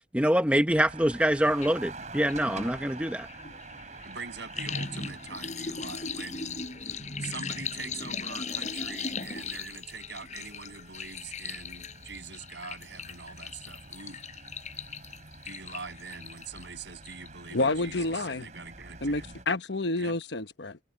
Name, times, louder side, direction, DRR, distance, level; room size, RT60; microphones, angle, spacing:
voice 1, 0.1-3.3, equal, 5° right, 1.0 m, -25 dB
sound 1, 0.7-19.5, right 3 dB, 40° right, 4.4 m, -48 dB
sound 2, 1.6-1.7 2.0-16.6 17.0-17.5 17.8-17.9, left 5 dB, 40° left, 7.4 m, -38 dB
voice 2, 4.0-14.2 15.4-19.3 20.0-20.2, right 5 dB, 75° right, 7.3 m, -43 dB
voice 3, 17.5-18.5 19.0-20.8, left 2 dB, 75° left, 1.1 m, -29 dB
head